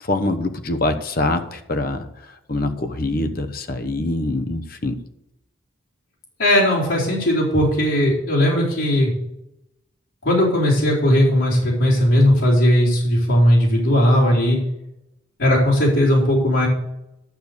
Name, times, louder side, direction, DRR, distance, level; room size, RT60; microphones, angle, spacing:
voice 1, 0.0-2.1 2.5-5.0, left 2 dB, 50° left, 7 dB, 1.0 m, -24 dB
voice 2, 6.4-9.1 10.2-14.6 15.4-16.7, equal, 80° left, -6 dB, 4.2 m, -17 dB
12.0 x 6.8 x 6.7 m, 0.88 s
head